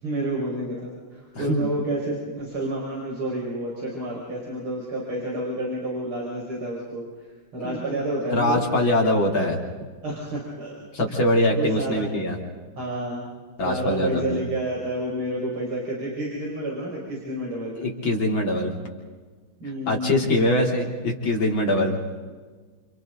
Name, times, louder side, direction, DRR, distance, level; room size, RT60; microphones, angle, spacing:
voice 1, 0.0-7.0 7.5-8.6 10.0-10.7 11.1-11.2 11.6-12.1 12.8-13.3 13.6-17.7 19.6-20.5, right 1 dB, 85° right, -5 dB, 6.0 m, -29 dB
voice 2, 1.4-1.7 7.6-7.8 8.3-9.6 10.9-12.4 13.6-14.4 17.8-18.7 19.9-21.9, left 1 dB, 65° left, -1 dB, 4.2 m, -23 dB
30.0 x 29.5 x 4.0 m, 1.4 s
omnidirectional pair, 2.3 m